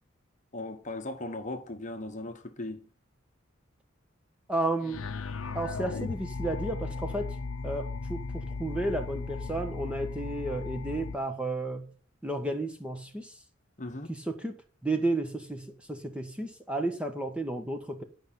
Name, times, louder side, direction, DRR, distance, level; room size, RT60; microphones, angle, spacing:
voice 1, 0.5-2.9 13.8-14.1, left 2 dB, 35° left, 1.1 m, -38 dB
voice 2, 4.5-5.0 5.5-7.4 7.6-12.0 12.2-13.3 14.1-14.5 14.8-18.0, right 2 dB, 5° right, 1.3 m, -32 dB
sound 1, 4.8-11.2, left 4 dB, 80° left, 0.8 m, -36 dB
11.0 x 5.4 x 7.5 m
head